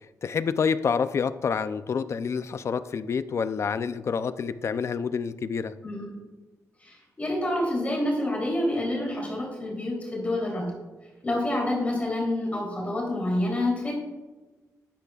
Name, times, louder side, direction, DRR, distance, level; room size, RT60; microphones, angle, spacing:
voice 1, 0.2-5.7, left 6 dB, 50° left, 13 dB, 0.5 m, -28 dB
voice 2, 6.8-10.7 11.2-13.9, left 1 dB, 20° left, -3 dB, 3.3 m, -28 dB
13.0 x 10.5 x 2.4 m, 1.2 s
wide cardioid pair, 120°, 6 cm